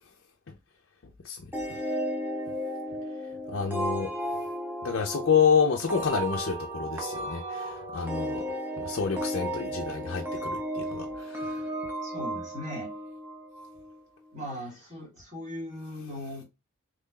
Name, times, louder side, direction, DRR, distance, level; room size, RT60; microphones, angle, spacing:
sound 1, 1.5-13.9, right 1 dB, 10° right, 0.6 m, -34 dB
voice 1, 3.5-4.1 4.8-8.4 8.8-11.6, left 6 dB, 55° left, 0.5 m, -28 dB
voice 2, 12.0-12.9 14.3-16.4, left 1 dB, 30° right, 1.5 m, -39 dB
3.8 x 3.1 x 2.3 m
head